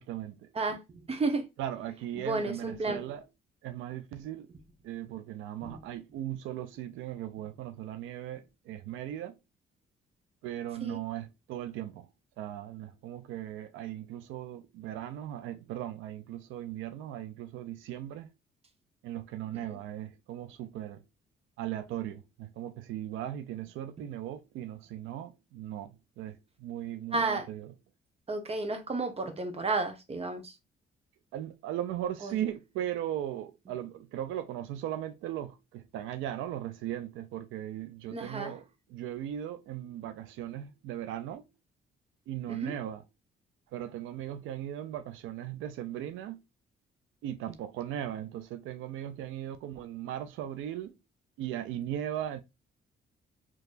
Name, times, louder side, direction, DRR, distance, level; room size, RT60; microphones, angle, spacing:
voice 1, 0.0-0.5 1.6-3.2 3.6-4.5 4.8-9.4 10.4-12.1 12.4-18.3 19.0-21.0 21.6-27.7 31.3-41.5 42.3-43.0 43.7-46.4 47.2-51.0 51.4-52.4, right 11 dB, 90° right, 0.5 m, -38 dB
voice 2, 0.5-1.5 2.2-3.0 5.6-5.8 10.8-11.0 19.7-19.8 27.1-27.5 28.3-30.6 32.2-32.3 38.1-38.5 42.5-42.7, right 3 dB, 30° right, 1.0 m, -32 dB
4.5 x 3.0 x 2.4 m
cardioid pair, 90°, 20 cm